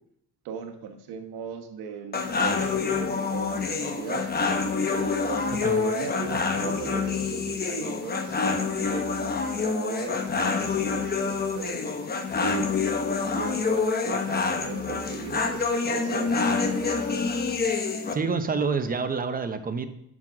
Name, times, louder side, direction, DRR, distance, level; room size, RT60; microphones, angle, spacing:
voice 1, 0.4-4.2 4.9-9.1 9.6-11.8 12.4-12.7 13.3-17.0, right 6 dB, 90° right, 6 dB, 1.3 m, -38 dB
sound 1, 2.1-18.1, left 4 dB, 25° left, 1.0 m, -27 dB
voice 2, 18.1-19.9, right 4 dB, 25° right, 9 dB, 0.8 m, -27 dB
7.3 x 5.8 x 6.1 m, 0.76 s
cardioid pair, 120°, 36 cm